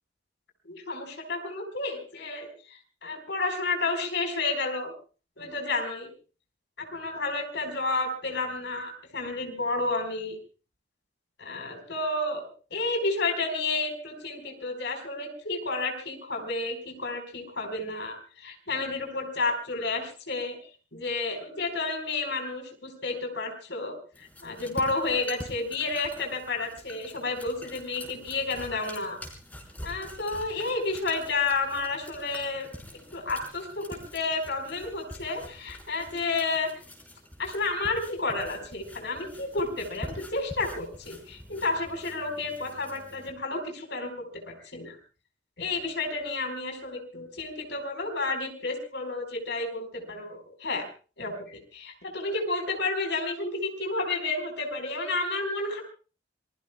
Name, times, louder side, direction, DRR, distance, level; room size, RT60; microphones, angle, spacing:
voice 1, 0.6-2.5 3.0-4.9 5.4-6.1 6.8-10.4 11.4-20.6 20.9-29.2 29.8-32.7 33.1-36.7 37.4-44.1 44.4-45.0 45.6-50.8 51.2-55.8, left 3 dB, 65° left, 4 dB, 4.5 m, -31 dB
sound 1, 24.1-43.3, left 1 dB, 10° left, 4.3 m, -46 dB
27.0 x 22.0 x 2.3 m, 0.36 s
head